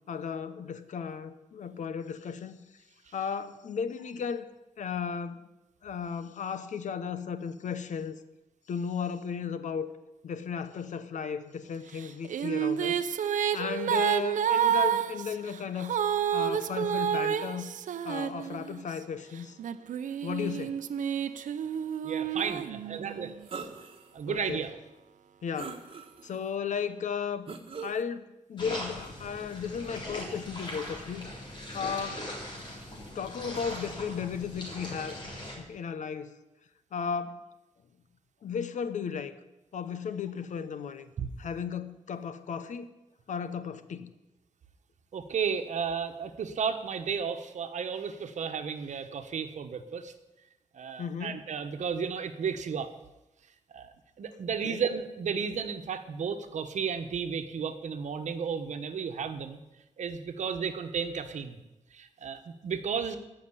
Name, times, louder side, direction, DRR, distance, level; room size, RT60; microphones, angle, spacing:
voice 1, 0.1-2.6 3.1-4.5 4.8-5.5 5.8-8.2 8.7-9.9 10.2-13.0 13.5-16.0 16.3-17.7 18.0-19.6 20.2-20.8 24.3-24.7 25.4-25.8 26.2-27.5 27.8-31.3 31.7-32.3 33.1-35.2 35.6-36.4 36.9-37.4 38.4-39.3 39.7-41.1 41.4-42.9 43.3-44.1 51.0-51.4 54.6-54.8, left 6 dB, 75° left, 0.9 m, -35 dB
Female singing, 12.0-18.9 19.6-23.3, right 9 dB, 90° right, 0.6 m, -29 dB
voice 2, 22.0-23.3 24.1-24.7 41.2-41.3 45.1-50.1 50.7-52.9 53.7-59.6 60.0-61.6 61.9-63.2, right 6 dB, 70° right, 1.2 m, -33 dB
sound 1, 23.5-24.1 24.6-24.7 25.6-26.4 27.5-28.0, right 5 dB, 45° right, 1.4 m, -41 dB
sound 2, 28.6-35.6, left 1 dB, 40° left, 3.6 m, -40 dB
14.5 x 5.9 x 9.8 m
wide cardioid pair, 145°, 13 cm